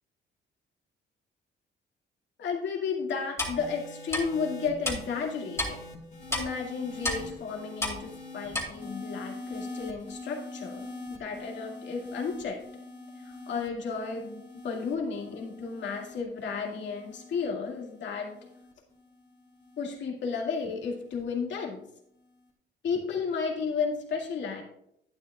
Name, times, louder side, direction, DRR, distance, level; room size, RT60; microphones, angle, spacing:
voice 1, 2.4-5.8 6.3-12.6 13.2-18.4 19.8-21.8 22.8-24.6, left 5 dB, 65° left, 0 dB, 2.2 m, -33 dB
Clock, 3.4-3.5 4.1-4.2 4.8-5.0 5.6-5.7 6.3-6.4 7.0-7.2 7.8-8.0 8.5-8.6, left 1 dB, 15° left, 2.6 m, -29 dB
sound 1, 3.5-20.0 20.9-21.2, left 2 dB, 35° left, 2.2 m, -44 dB
11.0 x 9.3 x 2.4 m, 0.76 s
cardioid pair, 90°, 20 cm